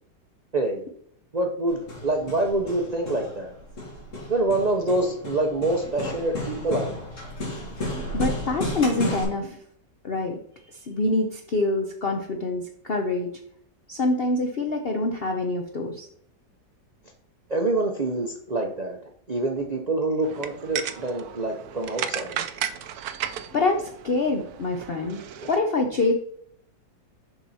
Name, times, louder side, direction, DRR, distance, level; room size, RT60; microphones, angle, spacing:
voice 1, 0.5-0.8 1.3-3.5 4.3-7.1 17.5-19.0 19.3-22.4, right 2 dB, 85° right, 2 dB, 0.3 m, -26 dB
Hammer, 1.7-9.2, left 1 dB, 40° left, 2.4 m, -33 dB
voice 2, 8.1-9.6 10.0-10.4 10.7-13.3 13.9-16.1 23.5-25.2 25.5-26.1, left 2 dB, 60° left, 3 dB, 0.6 m, -25 dB
sound 1, 20.2-25.6, right 9 dB, 70° right, 1.0 m, -34 dB
6.9 x 5.8 x 4.1 m, 0.65 s
omnidirectional pair, 2.0 m